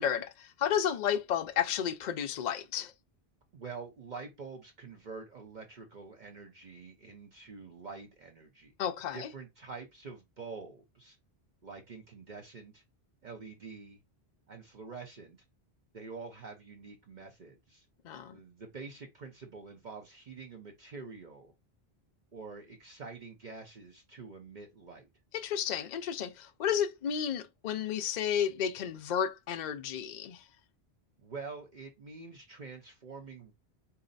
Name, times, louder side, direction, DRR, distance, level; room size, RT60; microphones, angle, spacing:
voice 1, 0.0-2.9 8.8-9.3 18.0-18.4 25.3-30.5, left 8 dB, 55° left, 0.6 m, -32 dB
voice 2, 3.5-8.7 9.1-11.2 11.6-12.8 13.2-14.0 14.5-15.4 15.9-17.9 18.3-21.5 22.3-25.1 31.2-33.5, right 4 dB, 50° right, 0.8 m, -46 dB
4.1 x 2.8 x 3.9 m
omnidirectional pair, 1.1 m